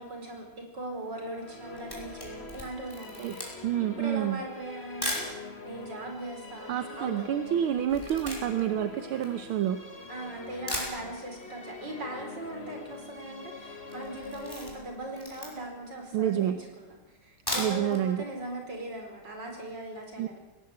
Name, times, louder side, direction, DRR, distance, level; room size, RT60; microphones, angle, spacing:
voice 1, 0.0-7.3 10.1-16.9 17.2-20.4, right 1 dB, 55° right, 3 dB, 5.5 m, -40 dB
Musical instrument, 1.1-16.5, left 4 dB, 30° left, 2.0 m, -45 dB
Camera, 1.5-5.3 6.0-6.1 6.3-10.0 10.4-10.5 10.7-11.5 11.8-11.9 12.2-12.3 12.5-12.9 13.2-13.5 13.8-15.8 16.3-16.4 17.2-18.0 18.4-18.5 18.8-18.9, equal, 10° left, 5.5 m, -38 dB
voice 2, 3.6-4.4 6.7-9.8 16.1-16.6 17.6-18.2 20.2-20.3, right 10 dB, 80° right, 10 dB, 1.8 m, -28 dB
21.5 x 18.5 x 8.1 m, 1.1 s
omnidirectional pair, 2.3 m